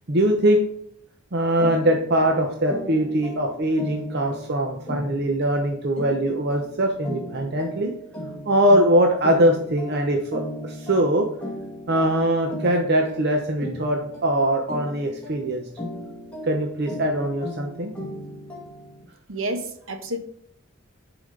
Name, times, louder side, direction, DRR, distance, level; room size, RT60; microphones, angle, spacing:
voice 1, 0.1-0.7 1.3-7.9 8.5-11.3 11.9-15.6 16.4-17.9, right 1 dB, 50° right, 2 dB, 0.8 m, -22 dB
sound 1, 1.6-19.0, left 1 dB, 5° left, 1.8 m, -37 dB
voice 2, 19.3-20.2, right 1 dB, 65° right, 6 dB, 1.2 m, -29 dB
11.0 x 5.0 x 3.8 m, 0.64 s
head